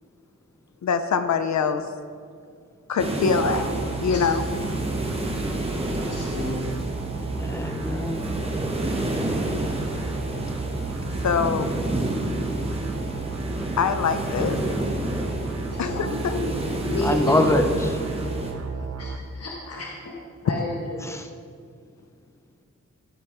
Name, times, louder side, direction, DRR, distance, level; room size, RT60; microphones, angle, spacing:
voice 1, 0.8-1.9 2.9-3.6 4.0-4.5 11.2-11.7 13.8-14.6 15.8-16.4, left 6 dB, 70° left, 10 dB, 0.7 m, -24 dB
sound 1, 3.0-18.5, right 1 dB, 20° right, 1.3 m, -29 dB
voice 2, 3.2-3.6 4.1-4.2 5.9-6.9 15.7-16.6 16.9-17.5 19.0-20.1 20.4-21.1, left 2 dB, 55° left, -3 dB, 1.5 m, -31 dB
sound 2, 3.4-19.2, right 3 dB, 60° right, 0.8 m, -34 dB
voice 3, 7.4-8.3 17.0-18.0 21.0-21.3, left 1 dB, 10° left, 6 dB, 0.7 m, -24 dB
15.5 x 5.2 x 4.5 m, 2.2 s
wide cardioid pair, 110°, 29 cm